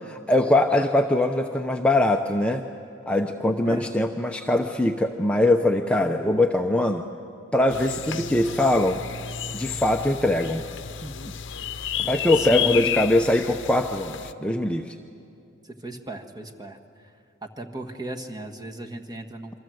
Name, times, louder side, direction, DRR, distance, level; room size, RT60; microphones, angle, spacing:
voice 1, 0.0-2.7 3.1-7.0 7.5-9.0 9.5-10.6 11.0-11.3 12.0-14.9, left 1 dB, 5° left, 3 dB, 0.8 m, -22 dB
sound 1, 7.7-14.3, left 9 dB, 65° left, 0.9 m, -31 dB
voice 2, 12.4-13.0 15.8-16.8 17.4-19.6, right 1 dB, 20° right, 3 dB, 1.6 m, -36 dB
27.5 x 24.5 x 7.9 m, 2.5 s
head